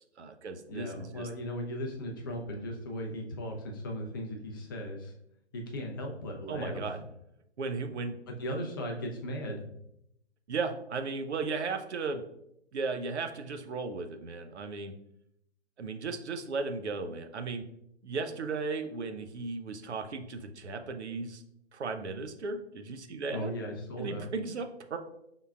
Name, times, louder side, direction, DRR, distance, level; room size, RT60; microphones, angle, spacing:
voice 1, 0.2-1.3 6.5-7.0 7.6-8.2 10.5-12.2 12.7-14.9 15.8-17.6 18.0-21.4 21.7-23.5 24.0-25.0, right 4 dB, 75° right, 7 dB, 0.7 m, -35 dB
voice 2, 0.7-5.1 5.5-6.9 8.4-9.7 23.3-24.3, equal, 20° left, 1 dB, 0.4 m, -37 dB
5.3 x 3.7 x 2.4 m, 0.78 s
figure-of-eight pair, 130°, 34 cm